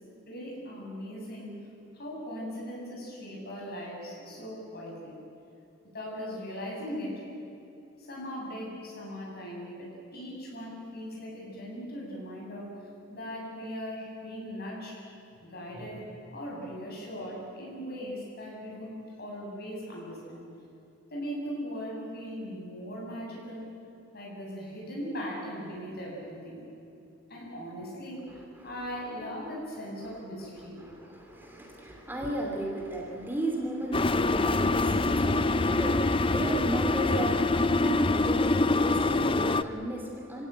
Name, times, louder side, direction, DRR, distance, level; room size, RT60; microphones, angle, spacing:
voice 1, 0.3-1.6 1.9-5.2 5.9-7.1 8.0-12.7 13.1-14.9 15.4-16.0 16.3-18.9 19.2-20.5 21.1-23.7 24.1-26.6 27.3-30.8, equal, 50° left, -2 dB, 7.9 m, -39 dB
voice 2, 28.3-28.9 30.0-30.2 30.6-40.5, right 1 dB, 10° right, 0 dB, 2.8 m, -35 dB
sound 1, 33.9-39.6, left 2 dB, 25° left, 0.6 m, -25 dB
26.5 x 17.5 x 9.2 m, 2.7 s
head